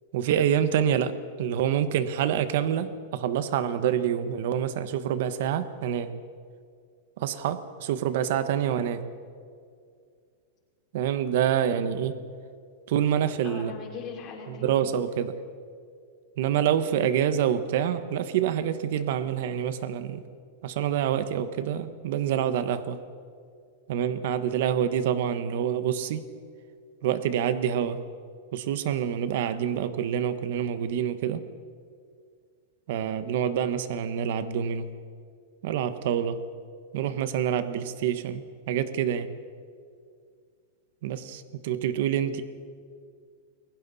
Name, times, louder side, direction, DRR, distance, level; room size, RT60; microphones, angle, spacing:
voice 1, 0.1-6.2 7.2-9.1 10.9-12.2 12.9-13.7 14.6-15.4 16.4-20.2 20.6-23.0 23.9-26.3 27.0-28.0 28.5-31.5 32.9-34.9 35.6-36.4 36.9-39.3 41.0-42.4, right 9 dB, 60° right, 12 dB, 1.2 m, -27 dB
voice 2, 13.4-14.7, left 5 dB, 25° left, -4 dB, 5.3 m, -39 dB
29.5 x 22.5 x 4.2 m, 2.2 s
supercardioid pair, 160°, 0 cm